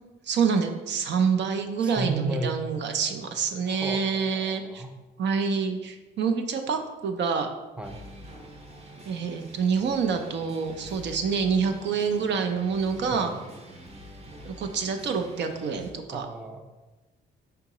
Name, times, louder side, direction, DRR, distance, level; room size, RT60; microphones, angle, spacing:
voice 1, 0.3-4.8 5.2-7.5 9.0-13.3 14.4-16.3, right 5 dB, 65° right, 6 dB, 0.5 m, -27 dB
voice 2, 1.8-2.6 3.7-4.9 7.8-8.0 13.1-13.4 16.1-16.7, right 3 dB, 5° right, 5 dB, 0.4 m, -33 dB
sound 1, 7.8-15.9, equal, 30° right, 0.7 m, -46 dB
4.7 x 3.5 x 2.9 m, 1.1 s
cardioid pair, 90°, 20 cm